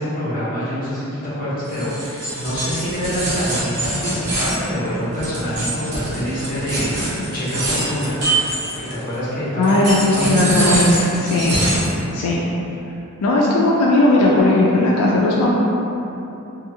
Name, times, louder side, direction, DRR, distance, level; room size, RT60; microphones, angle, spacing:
voice 1, 0.0-8.1 8.8-10.8, equal, 40° left, -10 dB, 0.9 m, -26 dB
sound 1, 1.7-9.1 9.6-12.0, right 1 dB, 80° right, 0.9 m, -24 dB
voice 2, 9.6-11.6 12.1-12.4 13.2-15.5, left 2 dB, 85° left, -4 dB, 0.3 m, -16 dB
2.7 x 2.5 x 2.7 m, 3.0 s
head